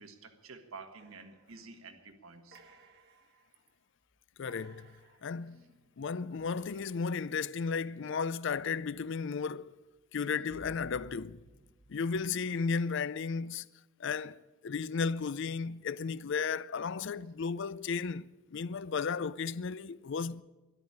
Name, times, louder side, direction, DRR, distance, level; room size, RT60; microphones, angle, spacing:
voice 1, 0.0-2.6, right 4 dB, 85° right, 1.6 m, -50 dB
sound 1, 1.0-1.9 2.5-3.7 4.1-4.2 4.5-7.2 8.5-9.2 9.6-12.7, right 2 dB, 50° right, 1.2 m, -59 dB
voice 2, 4.4-4.9 5.2-5.7 6.0-9.7 10.1-11.4 11.9-13.7 14.0-20.4, left 5 dB, 60° left, 0.4 m, -34 dB
13.0 x 11.5 x 9.7 m
head